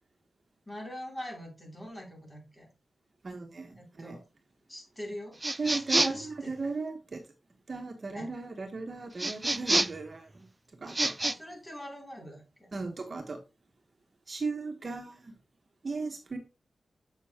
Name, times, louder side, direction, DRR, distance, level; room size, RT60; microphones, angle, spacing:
voice 1, 0.7-2.7 3.8-4.2 4.7-5.4 5.7-6.5 8.1-8.3 11.2-12.7, equal, 15° left, -1 dB, 3.4 m, -43 dB
voice 2, 3.2-4.2 5.6-7.2 7.7-11.2 12.7-13.4 14.3-15.3 15.8-16.4, right 3 dB, 45° right, 4 dB, 1.2 m, -37 dB
sound 1, 5.4-6.3 9.2-10.1 10.9-11.4, right 2 dB, 20° right, 0.3 m, -28 dB
7.5 x 6.8 x 2.9 m, 0.28 s
wide cardioid pair, 100°, 0 cm